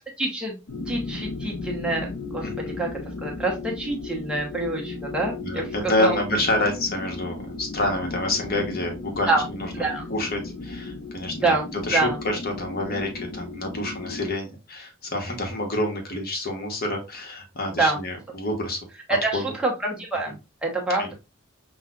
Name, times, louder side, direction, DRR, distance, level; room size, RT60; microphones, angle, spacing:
voice 1, 0.2-0.6 0.9-2.9 3.2-5.7 6.0-6.2 9.3-9.4 9.7-10.1 11.4-11.7 11.9-12.2 17.7-18.0 19.1-21.1, right 2 dB, 5° right, -1 dB, 0.9 m, -26 dB
sound 1, 0.7-14.3, left 3 dB, 75° left, 0.7 m, -35 dB
voice 2, 2.4-2.7 5.4-18.8 19.3-19.4 21.0-21.1, left 1 dB, 45° left, 2 dB, 1.1 m, -28 dB
6.0 x 2.4 x 2.4 m, 0.27 s
head